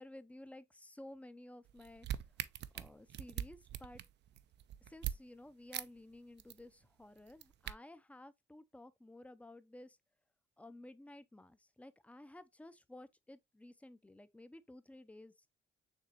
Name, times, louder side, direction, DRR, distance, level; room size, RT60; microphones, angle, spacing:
voice 1, 0.0-2.1 2.7-4.0 4.8-10.0 10.6-15.5, left 1 dB, 5° left, 0.4 m, -54 dB
sound 1, 1.7-5.2 5.7-5.9 6.1-6.6 7.2-7.7, right 11 dB, 60° right, 0.4 m, -42 dB
6.7 x 2.9 x 2.8 m
cardioid pair, 90°, 20 cm